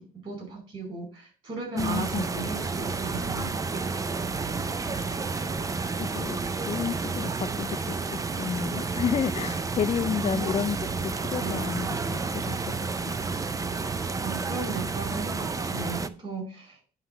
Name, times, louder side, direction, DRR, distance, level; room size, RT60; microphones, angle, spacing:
voice 1, 0.2-3.9 10.2-10.5 11.4-11.6 14.2-16.8, right 3 dB, 35° right, 4.7 m, -36 dB
voice 2, 1.7-2.3 5.8-10.8 11.0-13.2, left 7 dB, 40° left, 0.6 m, -31 dB
sound 1, 1.8-16.1, right 4 dB, 20° right, 0.5 m, -31 dB
9.8 x 3.3 x 6.7 m
cardioid pair, 110°, 17 cm